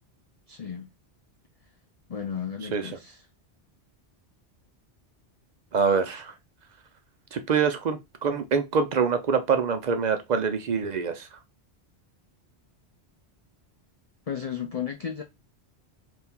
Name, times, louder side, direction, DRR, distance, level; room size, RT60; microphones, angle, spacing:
voice 1, 0.5-0.8 2.1-3.3 14.3-15.2, left 8 dB, 55° left, 0.4 m, -34 dB
voice 2, 5.7-6.3 7.3-11.3, right 5 dB, 55° right, 0.5 m, -25 dB
3.5 x 2.6 x 4.3 m
omnidirectional pair, 1.1 m